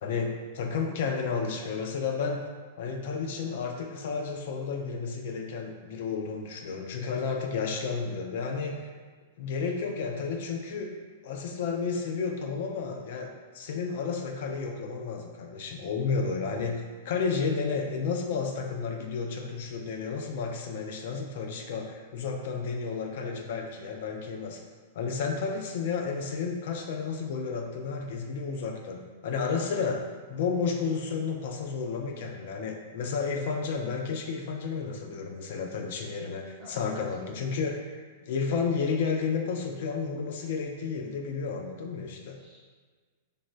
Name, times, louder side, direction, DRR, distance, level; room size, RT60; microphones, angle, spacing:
voice 1, 0.0-2.4 2.8-8.9 9.4-10.9 11.2-13.3 13.5-24.6 24.9-42.4, left 5 dB, 65° left, 2 dB, 0.3 m, -32 dB
voice 2, 36.6-37.5 42.4-42.7, right 1 dB, 25° right, -5 dB, 0.8 m, -47 dB
3.3 x 2.0 x 2.5 m, 1.5 s
hypercardioid pair, 125°, 0 cm